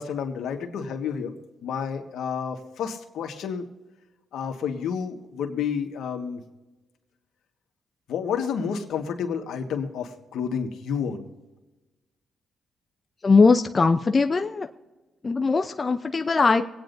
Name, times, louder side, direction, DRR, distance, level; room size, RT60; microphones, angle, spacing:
voice 1, 0.0-1.3 1.6-3.6 4.3-6.4 8.1-11.3, left 7 dB, 80° left, 4 dB, 1.5 m, -30 dB
voice 2, 13.2-14.7 15.2-16.6, left 4 dB, 30° left, 6 dB, 0.6 m, -20 dB
25.0 x 9.2 x 2.7 m, 1.1 s
cardioid pair, 90°, 0 cm